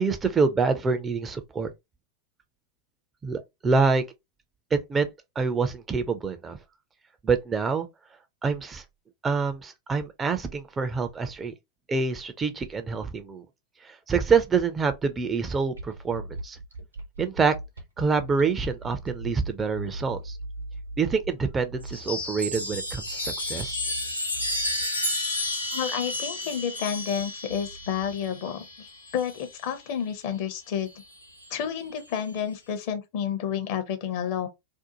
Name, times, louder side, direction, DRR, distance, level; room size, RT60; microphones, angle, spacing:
voice 1, 0.0-1.7 3.2-4.0 4.7-5.1 5.4-6.6 7.2-7.9 8.4-8.8 9.2-11.5 11.9-13.4 13.8-16.6 17.2-17.5 18.0-20.4 21.0-23.8, right 5 dB, 20° right, 0.4 m, -26 dB
sound 1, 15.7-28.8, right 2 dB, 80° right, 0.8 m, -41 dB
Chime, 21.8-29.7 30.9-31.5, left 1 dB, 85° left, 0.8 m, -32 dB
voice 2, 25.7-30.9 31.5-34.5, left 8 dB, 50° left, 0.6 m, -30 dB
2.6 x 2.1 x 2.8 m
figure-of-eight pair, 90°, 0 cm